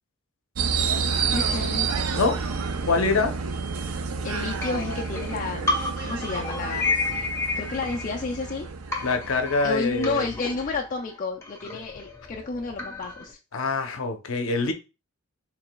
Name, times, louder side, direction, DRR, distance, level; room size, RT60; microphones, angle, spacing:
sound 1, 0.6-10.5, right 5 dB, 75° right, 0.5 m, -29 dB
voice 1, 1.3-1.9 4.2-5.7 6.0-6.9 7.6-8.7 9.6-13.4, left 4 dB, 35° left, 0.4 m, -31 dB
voice 2, 2.8-3.3 9.0-10.3 13.5-14.7, left 3 dB, 65° left, 0.7 m, -24 dB
sound 2, 4.6-8.6 8.9-13.3, left 3 dB, 10° left, 0.8 m, -32 dB
4.9 x 3.3 x 2.3 m
head